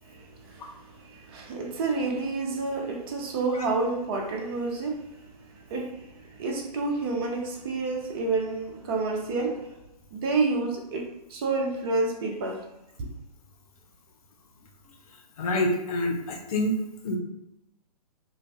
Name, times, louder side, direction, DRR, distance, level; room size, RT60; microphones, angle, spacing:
voice 1, 0.0-5.0 5.4-9.7 10.1-12.6 13.0-13.1, right 3 dB, 35° right, 0.6 m, -29 dB
voice 2, 15.4-16.8 17.0-17.2, left 1 dB, 60° left, 0.7 m, -27 dB
2.5 x 2.3 x 3.3 m
hypercardioid pair, 135°, 21 cm